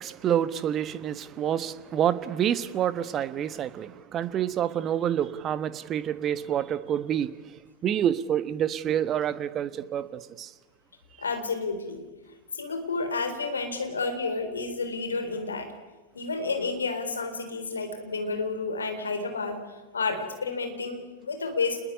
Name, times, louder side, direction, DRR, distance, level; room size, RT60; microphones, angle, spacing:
voice 1, 0.0-7.3 7.8-10.5, right 10 dB, 30° right, 1.3 m, -28 dB
voice 2, 11.2-12.0 12.5-15.7 16.1-21.8, left 4 dB, 75° left, 4.2 m, -30 dB
27.0 x 20.5 x 9.9 m
figure-of-eight pair, 90°, 0 cm